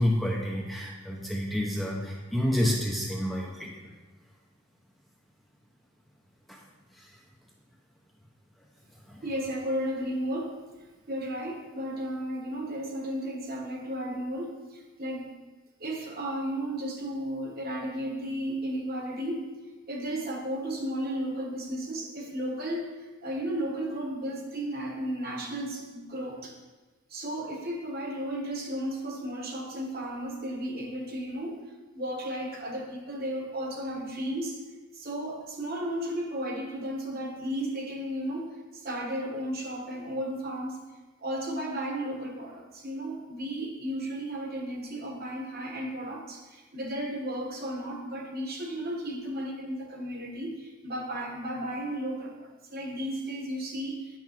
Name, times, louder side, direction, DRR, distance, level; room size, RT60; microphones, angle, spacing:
voice 1, 0.0-3.9 6.5-6.6 6.9-7.1 9.1-9.2, left 1 dB, ahead, -3 dB, 0.7 m, -29 dB
voice 2, 9.2-10.6 11.1-15.4 15.8-19.5 19.9-26.5 27.1-31.7 31.9-34.6 34.9-40.8 41.2-54.2, right 1 dB, 40° right, 1 dB, 1.3 m, -34 dB
9.2 x 6.1 x 4.4 m, 1.2 s
head